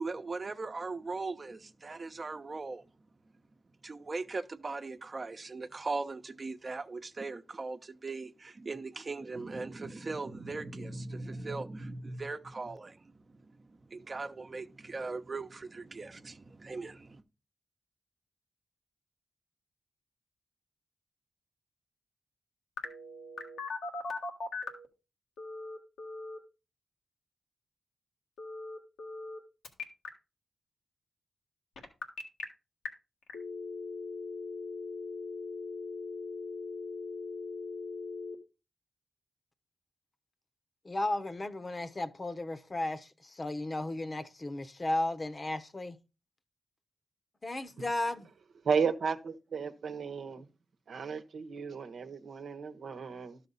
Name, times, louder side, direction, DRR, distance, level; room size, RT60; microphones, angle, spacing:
voice 1, 0.0-2.8 3.8-17.2, right 3 dB, 45° right, 0.9 m, -39 dB
Telephone, 22.8-24.9 25.4-26.4 28.4-29.4 29.6-30.1 31.8-32.4 32.9-33.0 33.3-38.3, left 4 dB, 85° left, 1.5 m, -39 dB
voice 2, 40.8-46.0 47.4-48.3, left 2 dB, 40° left, 1.0 m, -34 dB
voice 3, 48.6-50.5 50.9-53.4, right 6 dB, 75° right, 0.9 m, -34 dB
12.0 x 6.0 x 4.0 m
supercardioid pair, 40°, 0 cm